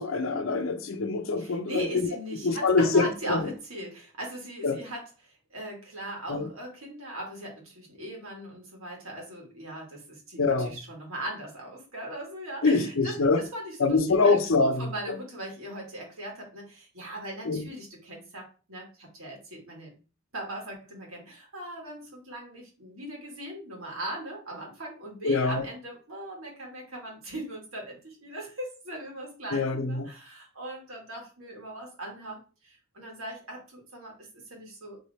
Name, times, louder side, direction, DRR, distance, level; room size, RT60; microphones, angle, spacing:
voice 1, 0.0-2.1 2.4-3.4 4.6-4.8 6.3-6.5 10.4-10.7 12.6-13.4 13.8-15.1 17.4-17.7 25.2-25.7 29.5-30.1, left 3 dB, 75° left, 0.7 m, -25 dB
voice 2, 1.4-14.0 14.2-19.9 20.3-35.0, right 1 dB, 85° right, 2.2 m, -39 dB
4.1 x 3.7 x 3.5 m
head